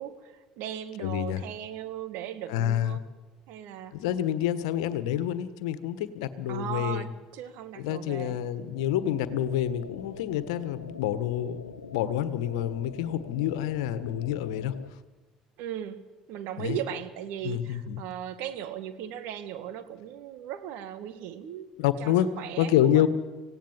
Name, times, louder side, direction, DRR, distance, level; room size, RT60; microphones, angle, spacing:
voice 1, 0.0-3.0 3.5-4.0 6.5-8.4 15.6-16.0 16.3-21.7 22.0-23.1, right 10 dB, 65° right, 10 dB, 2.0 m, -37 dB
voice 2, 1.0-1.4 2.5-3.0 3.9-7.1 7.8-11.6 11.9-14.7 16.6-16.8 17.4-18.0 21.8-22.3 22.6-23.1, left 11 dB, 70° left, 14 dB, 1.5 m, -28 dB
sound 1, 8.7-14.9, left 5 dB, 90° left, 1.0 m, -44 dB
26.0 x 17.5 x 7.5 m, 1.3 s
hypercardioid pair, 60°, 3 cm